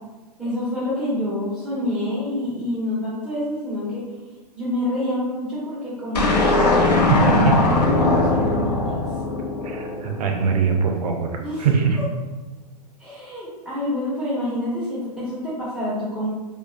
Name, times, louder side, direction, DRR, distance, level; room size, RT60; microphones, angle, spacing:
voice 1, 0.4-4.0 4.5-6.7 7.2-9.0 11.4-11.7 13.0-16.3, left 1 dB, ahead, -12 dB, 1.1 m, -27 dB
sound 1, 6.1-10.5, left 2 dB, 85° left, 0.6 m, -20 dB
voice 2, 7.1-7.5 9.6-11.3 11.6-12.0, right 6 dB, 70° right, 3 dB, 0.5 m, -21 dB
2.3 x 2.3 x 2.4 m, 1.2 s
hypercardioid pair, 115°, 21 cm